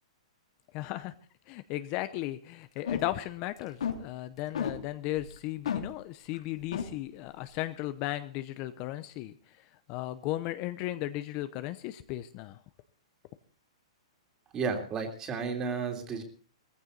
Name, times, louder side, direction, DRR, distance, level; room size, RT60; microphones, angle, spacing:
voice 1, 0.7-1.1 1.5-12.6, left 15 dB, 30° left, 11 dB, 0.8 m, -36 dB
sound 1, 2.8-3.3 3.6-4.0 4.5-4.8 5.2-5.4 5.6-5.9 6.3-6.4 6.7-6.9, left 8 dB, 85° left, 3.2 m, -31 dB
voice 2, 14.5-16.2, right 5 dB, 20° right, 4 dB, 3.1 m, -32 dB
18.0 x 15.0 x 4.0 m, 0.39 s
hypercardioid pair, 160°, 3 cm